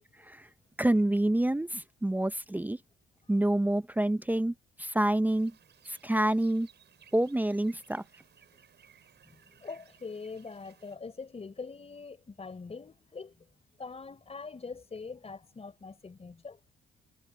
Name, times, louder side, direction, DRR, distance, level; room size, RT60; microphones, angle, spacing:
voice 1, 0.8-2.8 3.3-4.5 4.8-5.5 5.9-6.7 7.1-8.0, right 1 dB, 10° right, 0.7 m, -27 dB
sound 1, 5.3-11.0, right 8 dB, 60° right, 6.9 m, -61 dB
voice 2, 9.3-13.5 13.8-16.6, left 4 dB, 30° left, 4.7 m, -43 dB
cardioid pair, 90°, 20 cm